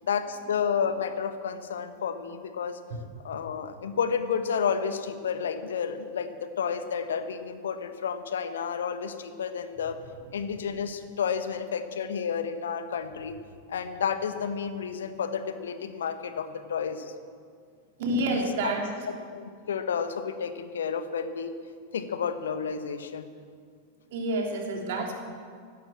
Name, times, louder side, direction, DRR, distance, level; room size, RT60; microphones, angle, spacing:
voice 1, 0.0-2.8 3.2-10.0 10.3-13.4 13.7-17.1 18.3-18.7 19.3-21.5 21.9-23.2, left 7 dB, 65° left, 9 dB, 1.2 m, -31 dB
voice 2, 18.0-18.9 24.1-25.1, right 1 dB, 55° right, 1 dB, 3.0 m, -28 dB
15.5 x 12.0 x 7.6 m, 2.1 s
figure-of-eight pair, 90°, 0 cm